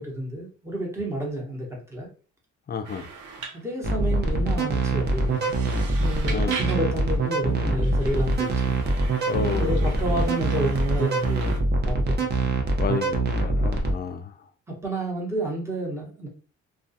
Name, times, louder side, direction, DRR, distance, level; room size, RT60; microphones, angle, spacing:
voice 1, 0.0-2.1 3.5-5.5 6.0-8.8 9.6-12.6 14.7-16.3, equal, 10° right, 1.0 m, -30 dB
voice 2, 2.7-3.1 6.3-6.6 9.3-10.3 12.8-14.3, left 5 dB, 35° left, 0.4 m, -31 dB
sound 1, 2.8-11.6, right 5 dB, 80° right, 0.7 m, -41 dB
sound 2, 3.8-13.9, right 2 dB, 35° right, 0.7 m, -24 dB
2.3 x 2.2 x 2.6 m
cardioid pair, 90°, 30 cm